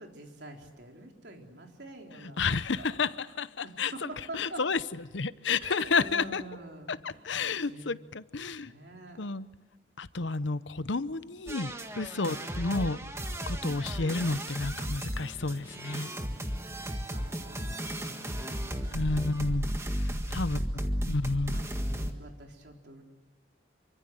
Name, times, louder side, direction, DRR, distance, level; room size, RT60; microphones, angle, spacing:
voice 1, 0.0-2.5 2.8-3.1 3.6-4.6 5.6-7.9 8.4-9.2 12.2-12.5 17.1-19.1 20.5-20.9 21.5-23.0, right 1 dB, 65° right, 2 dB, 3.9 m, -47 dB
voice 2, 2.4-3.9 4.3-4.8 5.1-6.4 6.9-7.0 7.2-8.7 9.2-9.5 10.0-13.0 13.5-16.1 18.9-19.7 20.3-20.6 21.1-21.6, left 4 dB, 80° left, 15 dB, 0.9 m, -30 dB
sound 1, 11.5-22.1, equal, 15° right, 1.7 m, -34 dB
27.0 x 25.0 x 7.8 m, 1.2 s
head